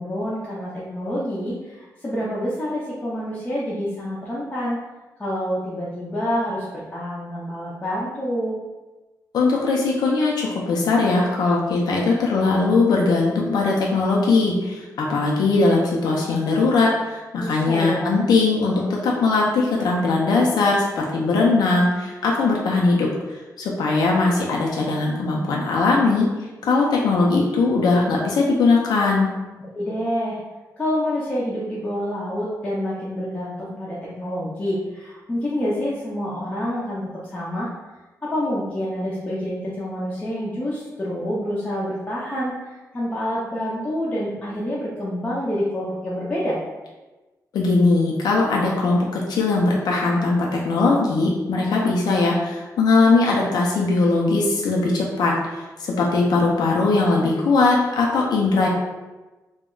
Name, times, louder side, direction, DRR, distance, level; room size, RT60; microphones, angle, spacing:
voice 1, 0.0-4.8 5.2-8.6 17.4-18.2 29.6-30.4 30.8-37.7 38.2-46.6, equal, 20° left, -8 dB, 0.4 m, -27 dB
voice 2, 9.3-23.1 23.6-26.3 26.7-29.3 47.5-55.3 55.8-58.7, left 3 dB, 90° left, -2 dB, 0.4 m, -20 dB
2.2 x 2.0 x 3.6 m, 1.2 s
wide cardioid pair, 170°, 7 cm